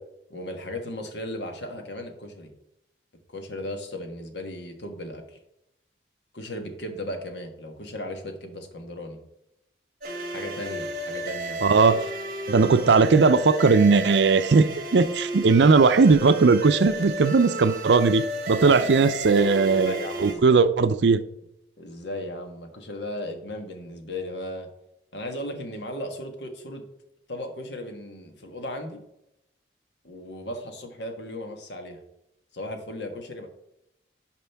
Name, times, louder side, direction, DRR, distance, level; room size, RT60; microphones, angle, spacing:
voice 1, 0.3-2.5 3.3-5.4 6.3-9.2 10.3-11.6 18.6-19.1 19.9-20.7 21.8-24.7 25.1-26.8 27.3-29.0 30.0-32.0 32.5-33.5, left 1 dB, 80° left, 1.4 m, -36 dB
sound 1, 10.0-20.3, right 1 dB, 50° right, 1.3 m, -33 dB
voice 2, 11.6-12.1 12.5-19.9 20.2-21.2, right 4 dB, 80° right, 0.5 m, -18 dB
11.0 x 5.2 x 3.5 m
head